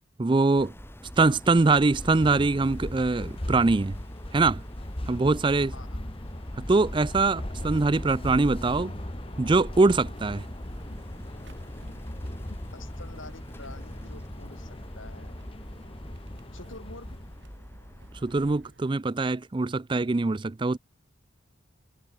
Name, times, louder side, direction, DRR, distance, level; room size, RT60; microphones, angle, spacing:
voice 1, 0.2-0.7 1.2-4.0 4.3-4.6 5.1-5.7 6.6-8.9 9.4-10.5 18.2-20.8, right 3 dB, 25° right, 0.4 m, -23 dB
sound 1, 0.6-18.6, equal, 10° left, 6.9 m, -45 dB
sound 2, 1.8-17.5, left 1 dB, 25° left, 1.6 m, -39 dB
voice 2, 5.7-6.0 12.5-15.4 16.5-17.2, left 2 dB, 70° left, 5.7 m, -47 dB
sound 3, 7.6-18.9, right 1 dB, 55° right, 6.9 m, -55 dB
head